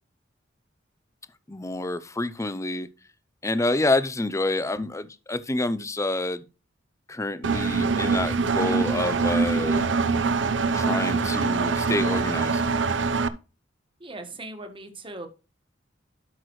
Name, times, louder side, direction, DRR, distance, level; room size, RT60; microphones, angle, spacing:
voice 1, 1.5-2.9 3.4-6.4 7.1-9.8 10.7-12.6, left 2 dB, 15° left, 0.6 m, -28 dB
Engine, 7.4-13.3, right 4 dB, 75° right, 0.8 m, -24 dB
voice 2, 14.0-15.3, right 2 dB, 30° right, 1.6 m, -39 dB
12.5 x 6.0 x 3.2 m
head